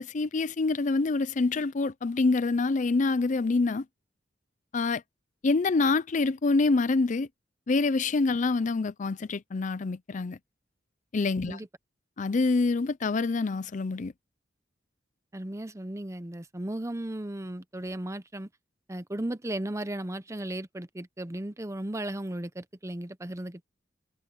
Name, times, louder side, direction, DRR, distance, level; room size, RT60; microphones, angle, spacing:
voice 1, 0.0-3.8 4.7-5.0 5.4-7.3 7.7-10.4 11.1-11.6 12.2-14.1, left 3 dB, 40° left, 0.5 m, -26 dB
voice 2, 15.3-18.5 18.9-23.6, right 1 dB, 15° right, 0.8 m, -35 dB
head